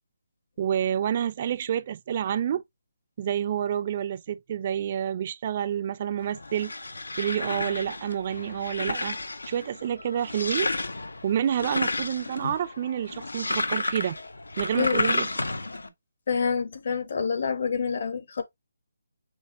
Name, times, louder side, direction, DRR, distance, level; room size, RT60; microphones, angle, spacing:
voice 1, 0.6-2.6 3.2-6.7 7.2-9.2 9.5-10.7 11.2-14.2 14.6-15.3, right 9 dB, 35° right, 0.3 m, -28 dB
sound 1, 6.2-15.9, left 2 dB, 90° left, 0.7 m, -32 dB
voice 2, 14.8-15.2 16.3-18.4, left 6 dB, 55° left, 1.1 m, -27 dB
6.2 x 2.2 x 3.9 m
figure-of-eight pair, 160°, 0 cm